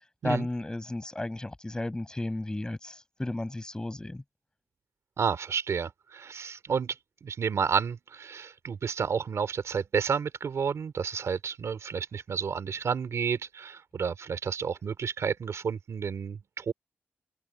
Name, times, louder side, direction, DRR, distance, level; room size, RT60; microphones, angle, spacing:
voice 1, 0.2-4.2, left 2 dB, 15° left, 7.9 m, -33 dB
voice 2, 5.2-6.9 7.2-16.7, right 6 dB, 90° right, 3.0 m, -31 dB
wide cardioid pair, 145°, 5 cm